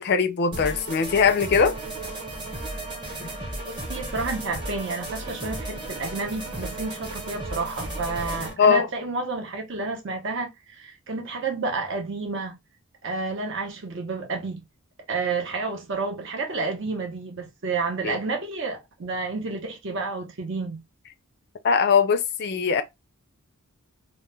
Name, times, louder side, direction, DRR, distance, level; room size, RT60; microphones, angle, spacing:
voice 1, 0.0-1.8 3.2-3.3 8.6-8.9 18.0-18.2 21.6-22.8, left 6 dB, 50° left, 0.3 m, -21 dB
sound 1, 0.5-8.5, right 1 dB, 20° right, 0.8 m, -34 dB
voice 2, 3.7-12.5 13.0-14.6 15.1-20.8, right 3 dB, 60° right, 0.7 m, -30 dB
2.2 x 2.1 x 3.1 m
head